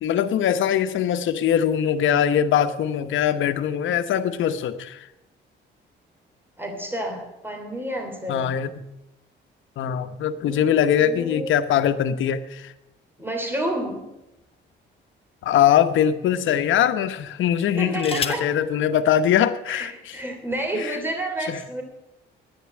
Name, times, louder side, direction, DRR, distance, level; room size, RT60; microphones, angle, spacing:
voice 1, 0.0-5.1 8.3-8.8 9.8-12.7 15.4-20.2 20.7-21.0 21.5-21.6, left 9 dB, 75° left, 11 dB, 1.0 m, -22 dB
voice 2, 6.6-8.6 10.4-11.5 13.2-14.1 17.7-18.5 19.7-21.8, right 1 dB, 10° right, 3 dB, 3.0 m, -30 dB
sound 1, 13.8-15.0 15.7-15.9 17.5-18.6 19.7-19.8 20.1-20.5, left 5 dB, 30° left, 1.5 m, -34 dB
10.5 x 9.8 x 8.9 m, 0.92 s
cardioid pair, 90°, 20 cm